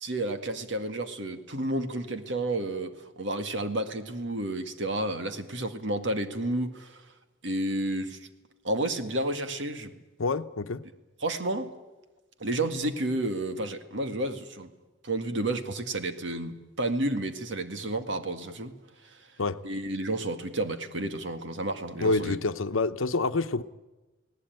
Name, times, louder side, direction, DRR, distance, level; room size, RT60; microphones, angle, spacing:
voice 1, 0.0-7.0 7.4-8.3 8.6-9.9 11.2-11.7 12.4-14.7 15.0-18.8 19.0-19.2 19.6-22.4, right 1 dB, 65° right, 8 dB, 1.9 m, -31 dB
voice 2, 10.2-10.8 19.4-19.6 22.0-23.6, left 3 dB, 85° left, 11 dB, 0.9 m, -27 dB
29.5 x 18.5 x 9.2 m, 1.1 s
head